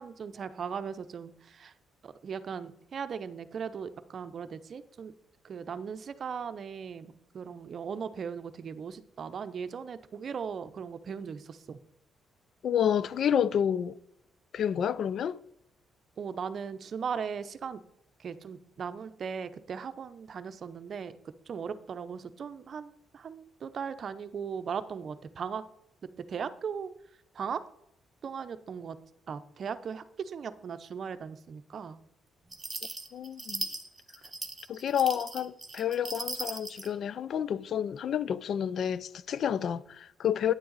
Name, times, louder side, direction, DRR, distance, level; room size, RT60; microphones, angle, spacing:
voice 1, 0.0-1.7 2.0-5.1 5.4-11.8 16.2-17.8 18.2-25.6 26.3-26.9 27.3-27.6 28.2-28.9 29.3-32.0, right 6 dB, 50° right, 0.6 m, -38 dB
voice 2, 12.6-13.9 14.5-15.4 33.1-33.7 34.7-40.5, left 9 dB, 60° left, 0.4 m, -29 dB
sound 1, 32.5-36.9, right 3 dB, 25° right, 1.0 m, -38 dB
9.6 x 7.7 x 4.0 m
cardioid pair, 90°, 0 cm